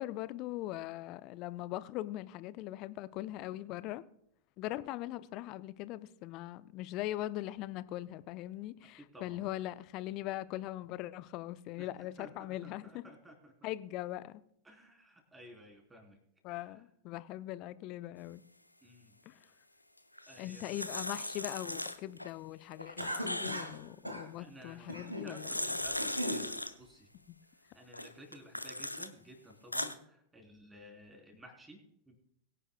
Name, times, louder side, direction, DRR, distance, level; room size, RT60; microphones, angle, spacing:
voice 1, 0.0-4.0 4.6-13.0 13.6-14.4 16.4-18.4 19.3-19.4 20.4-25.7 27.3-27.4, left 15 dB, 40° left, 0.5 m, -41 dB
voice 2, 9.1-9.5 11.8-11.9 12.2-13.7 14.6-16.2 16.5-16.8 18.8-19.2 20.3-20.9 24.4-27.1 27.7-31.8 32.1-32.2, equal, 10° right, 3.5 m, -54 dB
sound 1, 20.2-22.3 22.7-23.9 25.1-26.7 27.9-29.1 29.5-29.9, left 1 dB, 85° left, 0.6 m, -38 dB
Cough, 23.0-23.8 24.0-24.3 24.9-25.3 25.8-26.5, equal, 85° right, 1.8 m, -38 dB
22.0 x 9.9 x 2.3 m
figure-of-eight pair, 90°, 0 cm